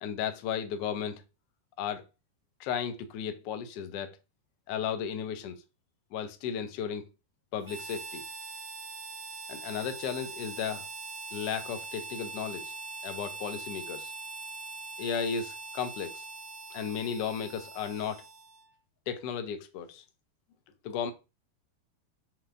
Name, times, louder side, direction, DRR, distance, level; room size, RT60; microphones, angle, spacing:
voice 1, 0.0-1.2 1.8-2.0 2.6-4.1 4.7-5.6 6.1-7.0 7.5-8.2 9.5-10.9 11.3-12.7 13.0-14.1 15.0-16.2 16.7-18.2 19.1-20.0 20.8-21.1, left 7 dB, 45° left, 0.5 m, -34 dB
Harmonica, 7.6-18.7, right 3 dB, 50° right, 0.6 m, -42 dB
4.3 x 2.4 x 2.5 m
figure-of-eight pair, 90°, 0 cm